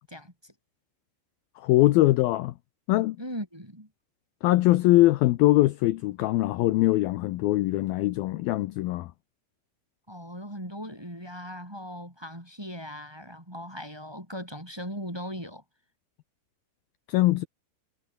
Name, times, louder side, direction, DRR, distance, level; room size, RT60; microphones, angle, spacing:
voice 1, 0.1-0.5 3.2-3.9 10.1-15.6, equal, 5° right, 3.5 m, -39 dB
voice 2, 1.6-2.5 2.9-3.2 4.4-9.1 17.1-17.5, left 17 dB, 75° left, 2.3 m, -22 dB
omnidirectional pair, 4.9 m